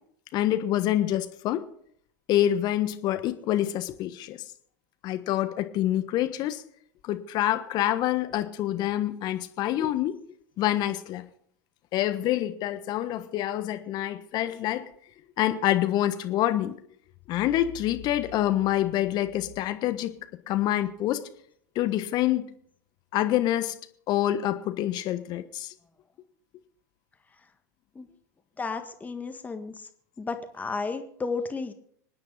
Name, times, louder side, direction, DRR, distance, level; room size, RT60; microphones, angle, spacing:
voice 1, 0.3-1.6 2.3-4.4 5.0-6.6 7.0-10.2 10.6-11.3 11.9-14.8 15.4-16.8 17.3-20.1 20.5-21.2 21.7-22.5 23.1-23.7 24.1-25.7, left 13 dB, 45° left, 10 dB, 1.3 m, -26 dB
voice 2, 28.6-29.9 30.2-31.7, left 4 dB, 15° left, 7 dB, 1.7 m, -33 dB
26.0 x 9.8 x 4.1 m, 0.66 s
hypercardioid pair, 90°, 10 cm